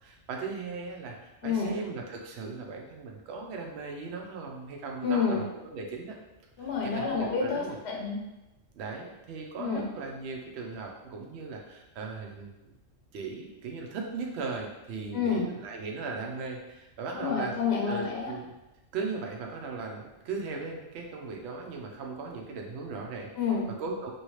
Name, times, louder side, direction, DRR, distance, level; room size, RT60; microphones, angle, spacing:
voice 1, 0.0-6.2 6.6-7.8 8.7-12.5 13.1-17.5 17.9-18.5 18.9-23.3 23.8-24.1, right 4 dB, 65° right, 1 dB, 0.8 m, -38 dB
voice 2, 1.4-1.7 5.0-5.4 6.6-8.2 9.6-9.9 15.1-15.5 17.1-18.3 23.4-23.7, left 5 dB, 60° left, -2 dB, 0.8 m, -29 dB
2.9 x 2.7 x 3.0 m, 0.98 s
omnidirectional pair, 1.3 m